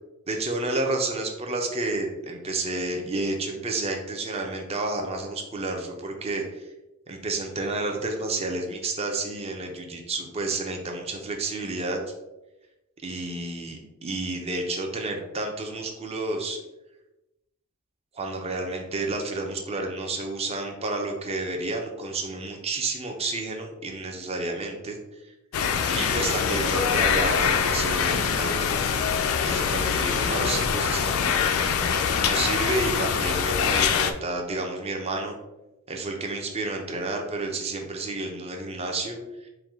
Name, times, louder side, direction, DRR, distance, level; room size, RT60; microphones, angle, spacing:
voice 1, 0.3-6.7 7.1-12.0 13.0-16.6 18.1-25.3 25.9-28.9 29.4-31.4 32.2-35.3 35.9-39.5, right 2 dB, 30° right, 2 dB, 0.6 m, -30 dB
sound 1, 25.5-34.1, left 6 dB, 70° left, 0.4 m, -24 dB
4.6 x 2.2 x 3.5 m, 0.98 s
head